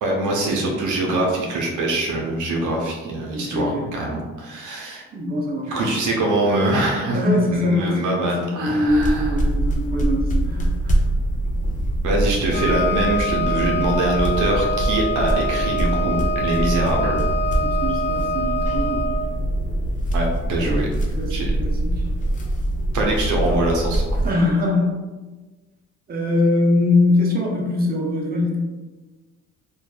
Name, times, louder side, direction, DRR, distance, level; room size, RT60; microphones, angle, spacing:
voice 1, 0.0-5.0 5.7-7.2 7.5-9.3 12.0-17.2 20.1-20.9 21.3-21.5 22.9-24.2, right 2 dB, 80° right, -1 dB, 0.6 m, -23 dB
voice 2, 3.3-3.8 5.1-5.7 7.1-11.0 17.6-19.1 20.6-20.8 21.1-22.0 24.2-25.0 26.1-28.6, left 2 dB, 30° right, -2 dB, 0.6 m, -22 dB
sound 1, 8.9-24.3, right 1 dB, 25° left, 0.4 m, -24 dB
Wind instrument woodwind instrument, 12.5-19.2, left 1 dB, 90° left, 0.9 m, -25 dB
2.6 x 2.3 x 2.3 m, 1.2 s
cardioid pair, 90°, 30 cm